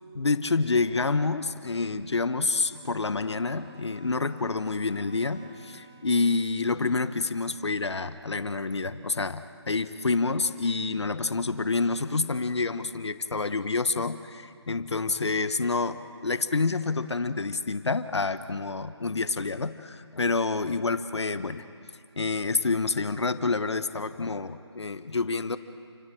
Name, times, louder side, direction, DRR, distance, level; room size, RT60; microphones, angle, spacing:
voice 1, 0.1-21.7 22.2-25.6, left 3 dB, 70° left, 12 dB, 1.2 m, -28 dB
Bowed string instrument, 2.7-6.3, right 2 dB, 20° right, 2.0 m, -52 dB
29.5 x 18.5 x 7.7 m, 2.5 s
figure-of-eight pair, 165°, 15 cm